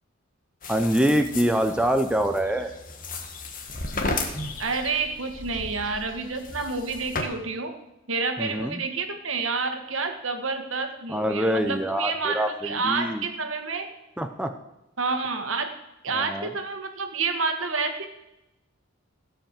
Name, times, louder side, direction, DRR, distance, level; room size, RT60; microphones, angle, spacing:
sound 1, 0.6-7.2, left 2 dB, 40° left, 1.6 m, -34 dB
voice 1, 0.7-2.7 8.4-8.8 11.1-13.2 14.2-14.5 16.1-16.5, equal, 5° right, 6 dB, 0.6 m, -25 dB
voice 2, 4.6-7.7 8.1-13.9 15.0-15.7 16.0-18.1, right 4 dB, 70° right, 6 dB, 1.7 m, -29 dB
16.5 x 5.7 x 7.5 m, 0.91 s
head